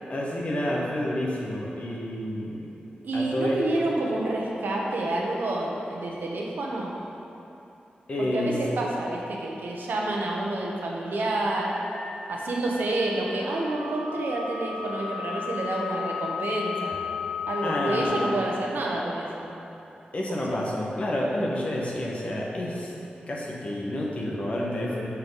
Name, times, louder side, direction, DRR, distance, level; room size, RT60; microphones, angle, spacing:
voice 1, 0.1-2.7 3.1-3.6 8.1-8.6 17.6-18.2 20.1-22.9 23.3-25.1, left 1 dB, 45° left, -3 dB, 1.0 m, -29 dB
voice 2, 3.0-6.9 8.2-11.7 12.3-16.9 17.5-19.5 20.5-20.6, right 2 dB, 90° right, -2 dB, 1.0 m, -28 dB
sound 1, 11.5-18.1, left 6 dB, 75° left, 1.2 m, -35 dB
7.1 x 5.7 x 3.9 m, 2.9 s
wide cardioid pair, 150°, 3 cm